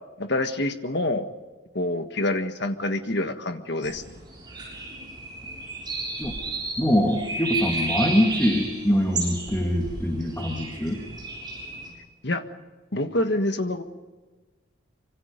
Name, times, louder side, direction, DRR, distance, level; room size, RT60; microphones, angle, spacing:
voice 1, 0.2-1.3 1.7-4.0 12.2-12.4 12.9-13.8, left 1 dB, 55° left, 7 dB, 1.6 m, -26 dB
sound 1, 3.8-11.9, right 2 dB, 20° right, 7.2 m, -33 dB
voice 2, 6.8-11.0, equal, 10° left, 0 dB, 2.1 m, -23 dB
25.5 x 25.5 x 5.3 m, 1.2 s
head